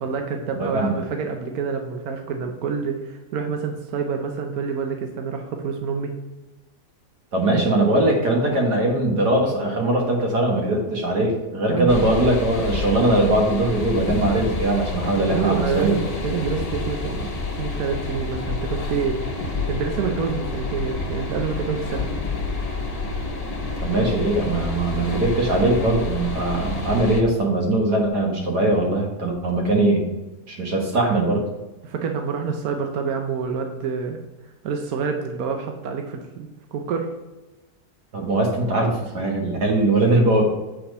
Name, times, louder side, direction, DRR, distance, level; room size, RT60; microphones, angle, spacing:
voice 1, 0.0-6.1 11.7-11.9 15.3-17.3 17.6-19.2 19.7-22.1 31.8-34.2 34.6-37.1, right 6 dB, 70° right, 4 dB, 1.2 m, -27 dB
voice 2, 0.5-0.9 7.3-15.9 23.8-30.1 30.5-31.4 38.1-40.4, right 2 dB, 85° right, 0 dB, 2.2 m, -21 dB
sound 1, 11.9-27.2, left 3 dB, 30° left, 0.9 m, -29 dB
7.7 x 4.3 x 5.3 m, 1.1 s
omnidirectional pair, 1.7 m